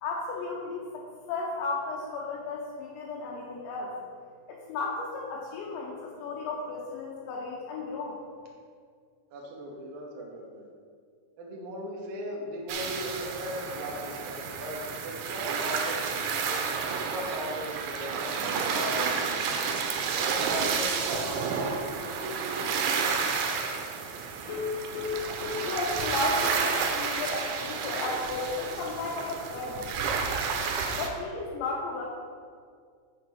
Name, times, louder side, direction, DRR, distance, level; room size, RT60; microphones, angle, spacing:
voice 1, 0.0-3.9 4.5-8.2 25.6-29.8 30.9-32.0, left 3 dB, 80° left, -3 dB, 3.0 m, -34 dB
voice 2, 9.3-10.7 11.4-16.6 17.0-19.6 20.2-21.5 22.0-23.2, equal, 70° right, -2 dB, 2.3 m, -38 dB
sound 1, 12.7-31.1, right 5 dB, 85° right, 3.0 m, -31 dB
sound 2, 24.5-27.0 27.3-27.4 27.7-27.8 28.2-28.3, left 5 dB, 45° left, 2.9 m, -36 dB
7.0 x 6.5 x 5.2 m, 2.1 s
omnidirectional pair, 5.2 m